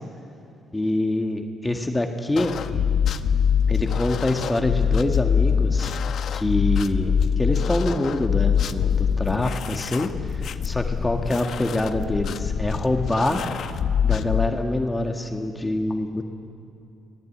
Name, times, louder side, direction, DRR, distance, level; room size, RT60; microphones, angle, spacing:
voice 1, 0.7-2.5 3.7-5.9 6.3-13.4 14.0-16.2, left 1 dB, 15° left, 4 dB, 1.7 m, -25 dB
sound 1, 2.4-14.5, left 7 dB, 65° left, 0.9 m, -24 dB
24.0 x 18.5 x 8.6 m, 2.5 s
cardioid pair, 90°, 0 cm